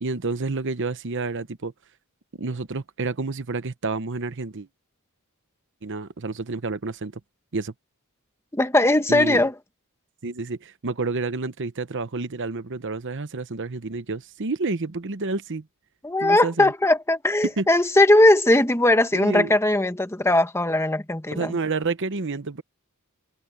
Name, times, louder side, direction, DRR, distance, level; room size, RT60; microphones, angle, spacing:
voice 1, 0.0-1.7 2.3-4.7 5.8-7.1 7.5-7.7 9.1-9.4 10.2-15.7 16.2-16.7 17.6-17.7 19.1-19.5 21.3-22.6, right 3 dB, 55° right, 0.9 m, -29 dB
voice 2, 8.5-9.5 16.0-21.6, left 1 dB, 10° left, 1.3 m, -19 dB
head